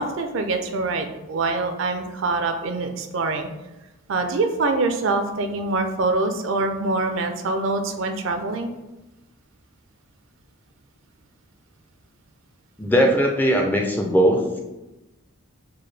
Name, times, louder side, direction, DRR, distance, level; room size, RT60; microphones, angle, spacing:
voice 1, 0.0-3.5 4.1-8.7, right 3 dB, 65° right, 6 dB, 0.4 m, -24 dB
voice 2, 12.8-14.6, equal, 10° left, 1 dB, 0.3 m, -19 dB
4.6 x 2.2 x 3.2 m, 1.0 s
head